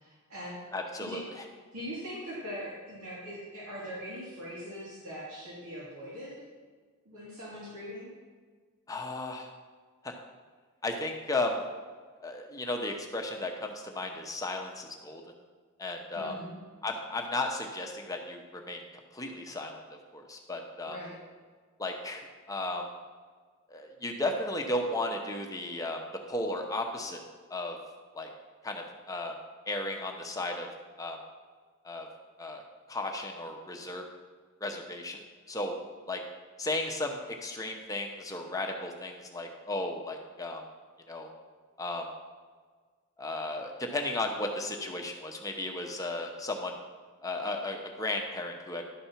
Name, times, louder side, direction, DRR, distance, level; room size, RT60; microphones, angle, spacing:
voice 1, 0.0-0.5 1.0-1.2 1.7-6.4 7.0-8.1 16.1-16.6 20.9-21.2, equal, 90° right, -9 dB, 2.7 m, -41 dB
voice 2, 0.7-1.4 8.9-9.5 10.0-10.1 10.8-11.6 12.2-15.2 15.8-16.3 16.8-18.8 19.1-19.8 20.1-21.0 21.8-22.9 23.7-26.0 26.3-27.2 27.5-27.8 28.1-28.3 28.6-29.3 29.7-30.7 31.0-31.2 31.8-32.1 32.4-32.6 32.9-34.0 34.6-35.2 35.5-35.7 36.1-36.2 36.6-40.6 41.1-41.3 41.8-42.1 43.2-46.8 47.2-48.8, left 2 dB, 15° left, 2 dB, 0.8 m, -34 dB
11.0 x 4.3 x 5.8 m, 1.5 s
head